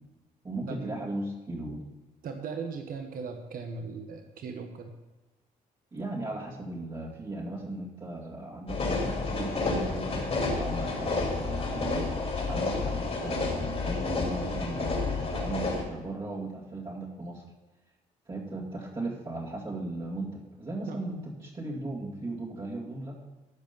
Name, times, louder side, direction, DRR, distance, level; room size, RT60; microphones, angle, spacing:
voice 1, 0.4-1.9 5.9-17.4 18.3-23.1, right 2 dB, 30° right, -7 dB, 2.4 m, -37 dB
voice 2, 2.2-4.9 20.9-21.0, right 5 dB, 65° right, 5 dB, 1.1 m, -38 dB
sound 1, 8.7-15.8, left 3 dB, 40° left, 2.9 m, -30 dB
14.0 x 5.2 x 5.4 m, 1.1 s
supercardioid pair, 70°, 16 cm